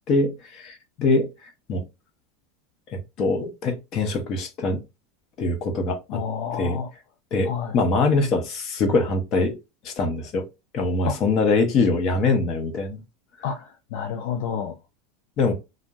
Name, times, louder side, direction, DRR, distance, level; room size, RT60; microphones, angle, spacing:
voice 1, 0.1-1.3 1.7-1.8 2.9-4.8 5.4-6.2 6.6-6.8 7.3-9.5 9.8-10.5 10.7-13.0 15.4-15.5, left 3 dB, 40° left, 0.8 m, -23 dB
voice 2, 6.1-6.9 7.4-7.8 11.1-11.2 13.4-14.8, left 7 dB, 65° left, 0.4 m, -29 dB
2.5 x 2.0 x 3.4 m
supercardioid pair, 150°, 0 cm